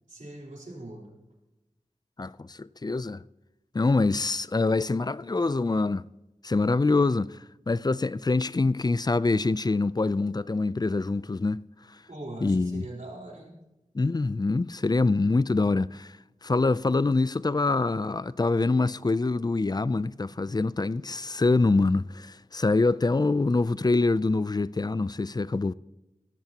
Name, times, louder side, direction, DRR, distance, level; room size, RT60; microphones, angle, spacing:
voice 1, 0.1-1.2 12.1-13.5, right 1 dB, 80° right, 3.6 m, -41 dB
voice 2, 2.2-3.2 3.7-6.1 6.4-7.4 7.7-11.6 12.4-12.9 13.9-16.2 16.4-25.7, left 3 dB, 30° left, 0.4 m, -25 dB
16.5 x 14.5 x 2.9 m
wide cardioid pair, 60°, 13 cm